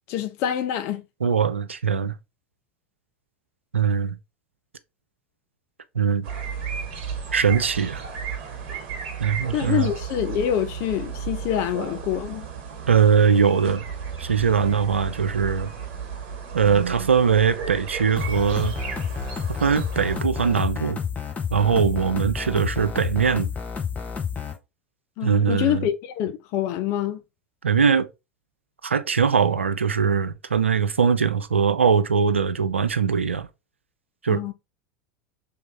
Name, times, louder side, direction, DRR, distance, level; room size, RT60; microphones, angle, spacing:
voice 1, 0.1-1.0 9.5-12.5 25.2-27.2 34.3-34.5, left 10 dB, 50° left, 0.6 m, -26 dB
voice 2, 1.2-2.2 3.7-4.2 5.9-6.3 7.3-8.0 9.2-9.9 12.9-13.8 14.2-15.7 16.5-18.7 19.6-21.0 21.5-23.5 25.2-25.9 27.6-28.1 28.8-33.5 34.2-34.4, right 6 dB, 90° right, 0.4 m, -21 dB
sound 1, 6.2-20.2, right 6 dB, 55° right, 1.1 m, -34 dB
sound 2, 18.2-24.5, left 7 dB, 25° left, 0.9 m, -30 dB
3.4 x 2.8 x 3.4 m
figure-of-eight pair, 80°, 6 cm